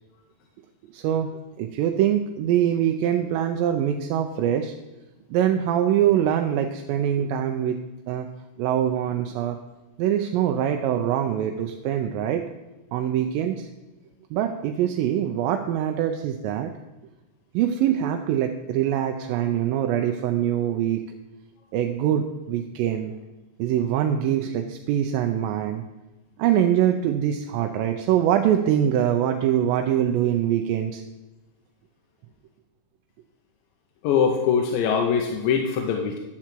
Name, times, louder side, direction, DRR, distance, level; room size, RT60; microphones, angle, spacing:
voice 1, 0.9-1.3 1.6-4.7 5.3-7.8 8.1-8.3 8.6-9.6 10.0-12.4 12.9-13.7 14.3-16.7 17.5-21.0 21.7-23.1 23.6-25.8 26.4-31.0, right 10 dB, 85° right, 5 dB, 2.3 m, -23 dB
voice 2, 34.0-36.2, left 6 dB, 85° left, 2 dB, 2.5 m, -22 dB
11.0 x 4.5 x 7.4 m, 1.1 s
omnidirectional pair, 4.0 m